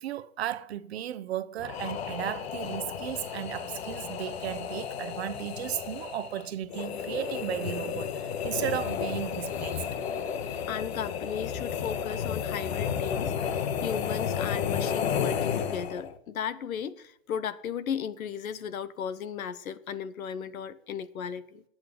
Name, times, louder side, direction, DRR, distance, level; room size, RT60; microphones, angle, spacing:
voice 1, 0.0-10.2, right 11 dB, 50° right, 0.7 m, -35 dB
sound 1, 1.6-16.2, left 7 dB, 45° left, 1.0 m, -32 dB
voice 2, 10.7-21.6, left 8 dB, 75° left, 1.1 m, -35 dB
12.0 x 8.6 x 5.1 m
hypercardioid pair, 160°, 42 cm